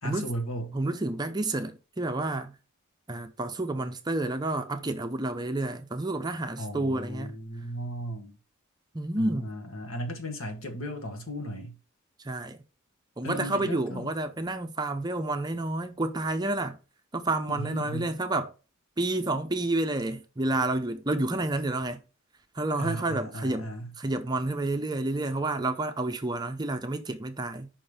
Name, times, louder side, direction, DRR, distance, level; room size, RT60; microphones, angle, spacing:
voice 1, 0.0-0.7 6.6-8.4 9.2-11.8 13.2-14.1 17.5-18.1 22.8-23.9, equal, 70° left, 1.8 m, -36 dB
voice 2, 0.7-2.6 3.1-7.4 8.9-9.5 12.2-12.6 13.2-16.8 17.1-18.5 19.0-22.0 22.5-23.7 24.0-27.7, right 2 dB, 20° right, 0.6 m, -30 dB
5.5 x 5.2 x 5.4 m
head